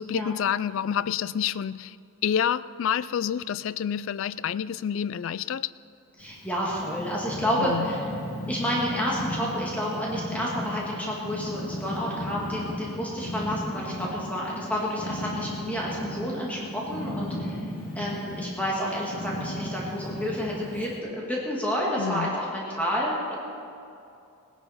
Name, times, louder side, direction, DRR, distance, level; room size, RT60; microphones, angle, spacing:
voice 1, 0.0-2.0 2.2-5.7 7.6-7.9 22.0-22.4, left 8 dB, 60° left, 18 dB, 0.3 m, -28 dB
Purr, 6.2-21.0, left 1 dB, 80° left, 2.5 m, -35 dB
voice 2, 6.2-8.0 8.5-17.7 18.0-23.3, equal, 5° left, -4 dB, 1.8 m, -30 dB
18.0 x 10.5 x 5.6 m, 2.6 s
head